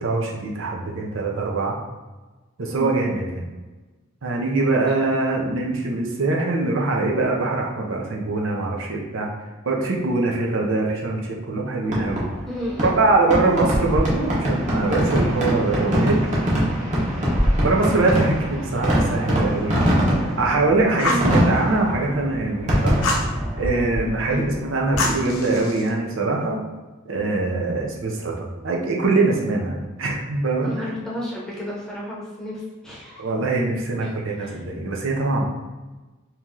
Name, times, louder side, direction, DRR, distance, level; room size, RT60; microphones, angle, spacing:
voice 1, 0.0-1.8 2.6-3.4 4.2-9.3 9.6-12.2 12.8-16.6 17.6-20.0 20.4-23.0 23.6-26.6 27.1-30.9 33.2-35.4, right 3 dB, 70° right, -1 dB, 0.7 m, -23 dB
Fireworks, 11.8-25.4, equal, 35° right, 1.0 m, -23 dB
voice 2, 12.5-12.9 21.1-21.3 24.3-24.4 30.6-33.2 34.0-34.6, equal, 5° left, -6 dB, 0.8 m, -32 dB
Fire, 21.0-21.3 23.0-23.3 25.0-25.9, left 2 dB, 85° left, 0.6 m, -25 dB
3.0 x 2.9 x 3.6 m, 1.2 s
head